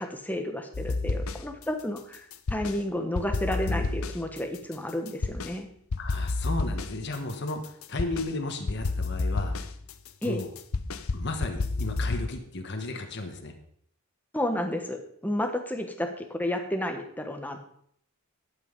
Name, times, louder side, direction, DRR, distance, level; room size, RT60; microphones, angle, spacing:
voice 1, 0.0-5.7 10.2-10.4 14.3-17.6, left 1 dB, 10° left, 5 dB, 1.2 m, -31 dB
sound 1, 0.7-1.6 2.0-2.8 3.1-5.6 5.9-8.3 8.7-12.3, left 3 dB, 75° left, 0.7 m, -30 dB
voice 2, 6.0-9.6 10.2-10.5 11.1-13.5, left 2 dB, 55° left, 4 dB, 1.5 m, -34 dB
11.5 x 8.1 x 5.2 m, 0.67 s
head